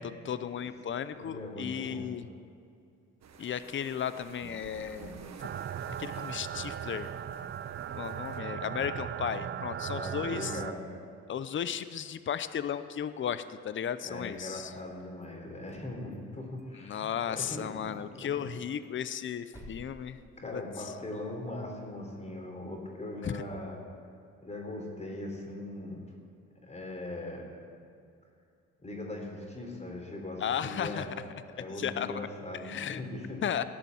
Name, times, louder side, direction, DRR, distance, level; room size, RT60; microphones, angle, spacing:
voice 1, 0.0-2.3 3.4-5.2 6.0-7.1 7.9-10.6 11.3-14.7 16.8-20.6 23.2-23.4 30.4-31.1 31.7-32.2 32.6-33.1 33.4-33.6, left 8 dB, 40° left, 13 dB, 0.7 m, -35 dB
voice 2, 1.1-2.1 9.9-10.9 14.0-18.5 20.4-23.8 24.4-26.0 26.6-27.5 28.8-31.1 31.5-33.4, left 1 dB, 20° left, 0 dB, 3.6 m, -40 dB
sound 1, 3.2-8.4, right 5 dB, 60° right, 1.4 m, -50 dB
sound 2, 5.4-10.7, right 9 dB, 40° right, 0.5 m, -38 dB
sound 3, 14.7-15.3 15.6-16.7 17.0-17.1 17.5-17.6 17.9-18.0 18.4-21.0, equal, 10° right, 3.7 m, -55 dB
17.5 x 6.8 x 9.3 m, 2.4 s
cardioid pair, 90°, 30 cm